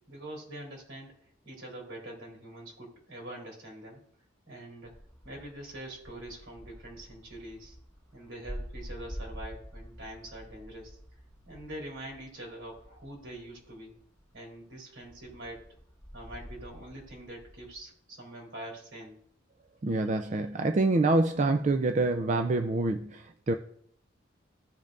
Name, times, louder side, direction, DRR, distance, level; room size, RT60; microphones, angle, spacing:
voice 1, 0.1-4.0 4.5-4.9 5.2-7.8 8.1-11.0 11.5-14.0 14.3-15.6 16.1-19.2, right 1 dB, 75° right, 3.5 m, -44 dB
sound 1, 4.8-14.5 15.0-17.8, equal, 15° left, 1.7 m, -47 dB
voice 2, 19.8-23.5, right 2 dB, 40° right, 0.4 m, -26 dB
16.0 x 5.4 x 2.6 m
head